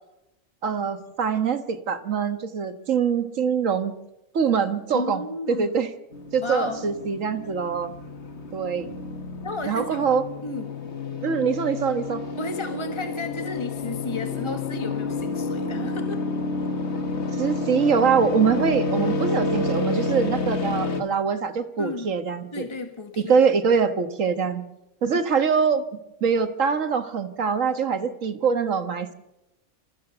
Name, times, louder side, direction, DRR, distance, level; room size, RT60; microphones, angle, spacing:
voice 1, 0.6-3.9 4.3-5.2 5.5-5.9 6.3-7.9 8.5-8.9 9.7-10.2 11.2-12.2 17.4-22.7 23.2-24.6 25.0-25.9 26.2-29.1, right 6 dB, 70° right, 10 dB, 1.7 m, -23 dB
voice 2, 4.9-5.8 6.4-6.9 9.4-10.0 10.4-10.7 12.4-16.2 21.8-22.1 22.5-23.5, left 3 dB, 20° left, 6 dB, 1.4 m, -33 dB
sound 1, 6.1-21.0, left 3 dB, 55° left, 1.7 m, -29 dB
28.0 x 15.0 x 6.8 m, 0.94 s
omnidirectional pair, 1.4 m